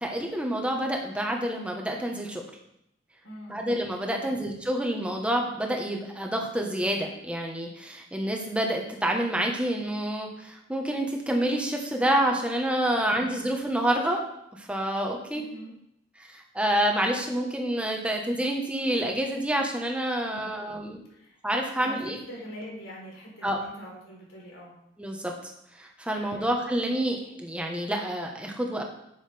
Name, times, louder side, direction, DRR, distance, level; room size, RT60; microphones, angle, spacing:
voice 1, 0.0-2.4 3.5-14.2 14.5-15.4 16.3-21.0 21.4-22.2 23.4-23.6 25.0-25.3 25.8-28.8, right 1 dB, 5° right, 1 dB, 1.2 m, -28 dB
voice 2, 3.2-3.7 4.2-4.4 12.9-13.4 15.3-15.7 20.2-20.6 21.1-21.4 21.8-24.8 26.3-26.5, equal, 85° left, -3 dB, 3.8 m, -44 dB
10.0 x 7.3 x 3.4 m, 0.77 s
head